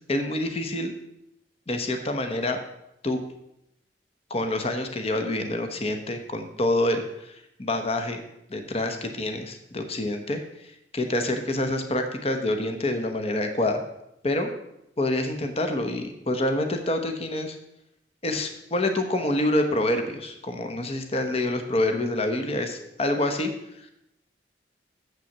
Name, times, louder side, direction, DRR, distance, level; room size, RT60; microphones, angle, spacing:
voice 1, 0.1-0.9 1.7-2.6 3.0-3.2 4.3-8.2 8.5-13.8 14.2-14.5 15.0-17.6 18.2-23.5 23.8-23.9, left 1 dB, 35° left, 6 dB, 1.0 m, -27 dB
7.8 x 5.8 x 7.2 m, 0.81 s
head